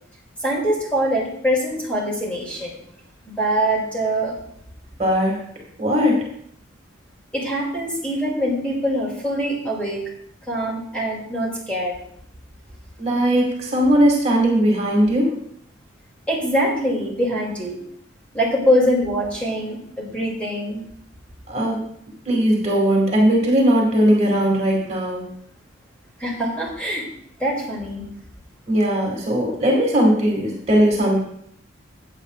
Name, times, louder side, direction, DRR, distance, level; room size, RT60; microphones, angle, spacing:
voice 1, 0.4-2.8 3.3-4.4 7.3-10.0 10.5-11.9 16.3-17.8 18.3-20.8 26.2-27.1 27.4-28.1, equal, 5° left, -4 dB, 2.6 m, -23 dB
voice 2, 5.0-5.5 5.8-6.3 13.0-15.4 21.5-21.8 22.3-25.3 28.7-31.2, equal, 35° right, -1 dB, 2.0 m, -19 dB
15.0 x 8.6 x 2.5 m, 0.70 s
head